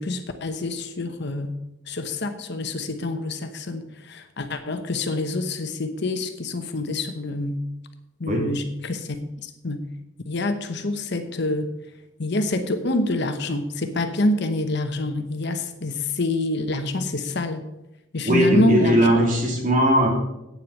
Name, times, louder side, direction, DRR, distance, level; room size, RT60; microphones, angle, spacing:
voice 1, 0.0-1.5 1.9-7.6 8.2-9.9 10.3-11.7 12.2-17.7 18.1-19.1, left 2 dB, 55° left, 7 dB, 1.0 m, -27 dB
voice 2, 18.2-20.1, right 1 dB, 40° right, -1 dB, 2.9 m, -19 dB
9.2 x 7.5 x 6.4 m, 0.93 s
head